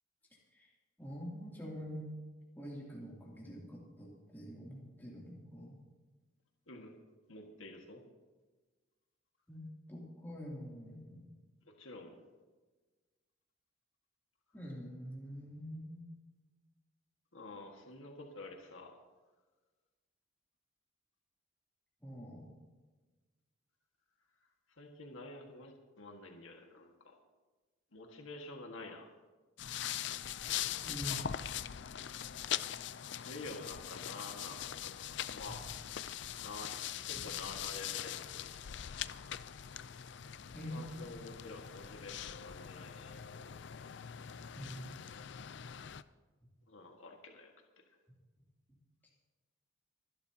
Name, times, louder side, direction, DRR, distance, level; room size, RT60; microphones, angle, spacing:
voice 1, 1.0-2.1 2.5-5.8 9.5-11.3 14.5-16.1 22.0-22.5 30.8-31.2 35.5-35.6 40.5-41.2 44.5-45.0 49.0-49.1, equal, 10° left, -5 dB, 2.8 m, -46 dB
voice 2, 7.3-8.0 11.8-12.2 17.3-19.0 24.8-27.1 27.9-29.1 30.5-30.8 33.1-35.6 36.4-36.7 37.0-38.7 40.7-43.2 46.7-47.5, left 2 dB, 75° left, 1 dB, 1.8 m, -49 dB
sound 1, 29.6-46.0, left 10 dB, 55° left, 0.4 m, -42 dB
25.0 x 12.0 x 2.9 m, 1.3 s
head